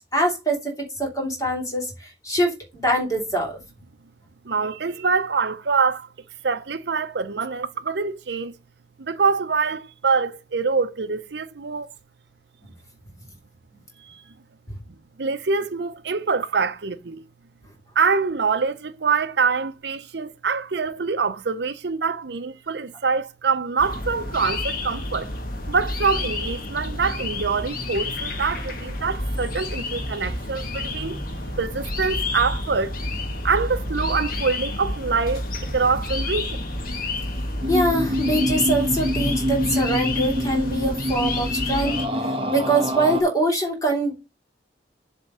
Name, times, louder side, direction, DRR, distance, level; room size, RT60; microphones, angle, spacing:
voice 1, 0.1-2.5 2.8-3.6 37.7-42.0 42.5-44.2, right 1 dB, 20° left, 3.0 m, -23 dB
voice 2, 4.5-6.1 6.4-8.5 9.0-11.9 15.2-17.2 18.0-25.3 25.7-31.2 31.6-33.0 33.4-35.4 35.7-36.6, right 5 dB, 70° right, 0.7 m, -24 dB
sound 1, 23.8-42.1, left 2 dB, 50° left, 1.5 m, -29 dB
sound 2, 37.6-43.2, equal, 30° right, 1.1 m, -26 dB
7.5 x 3.5 x 5.5 m
head